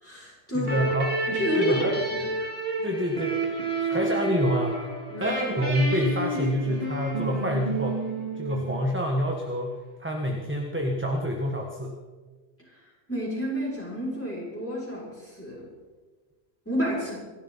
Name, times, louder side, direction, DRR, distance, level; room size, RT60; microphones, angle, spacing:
voice 1, 0.0-0.7 1.3-1.8 2.1-2.2 5.1-5.3 13.1-15.1 15.4-15.6 16.6-17.2, equal, 10° left, -5 dB, 6.5 m, -29 dB
voice 2, 0.5-1.2 1.5-2.0 2.8-3.6 3.9-4.9 5.2-8.0 8.3-12.0, equal, 10° right, 0 dB, 1.6 m, -27 dB
sound 1, 0.6-9.1, right 3 dB, 55° right, 3.0 m, -30 dB
27.0 x 12.0 x 4.2 m, 1.3 s
omnidirectional pair, 1.2 m